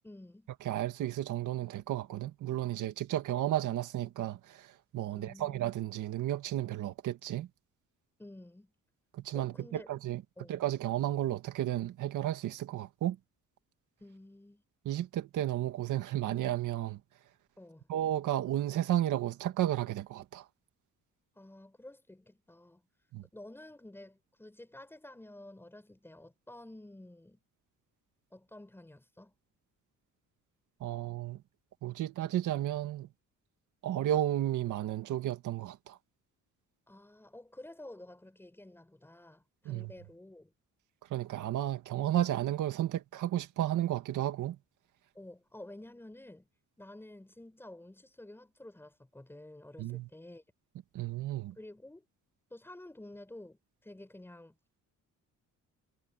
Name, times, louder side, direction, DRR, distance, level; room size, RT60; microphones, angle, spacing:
voice 1, 0.0-0.5 5.1-5.6 8.2-8.7 9.3-9.9 10.4-10.6 14.0-14.6 17.6-17.9 21.4-22.8 23.3-27.4 28.3-29.3 36.9-40.5 45.1-46.5 46.8-50.4 51.6-52.0 52.5-54.5, left 1 dB, 5° left, 5.8 m, -51 dB
voice 2, 0.6-7.5 9.1-10.2 10.5-13.2 14.8-17.0 17.9-20.5 23.1-23.2 30.8-31.4 31.8-33.1 33.8-36.0 39.7-39.9 41.1-44.6 49.8-50.1 50.9-51.6, right 13 dB, 75° right, 2.1 m, -33 dB
cardioid pair, 170°, 31 cm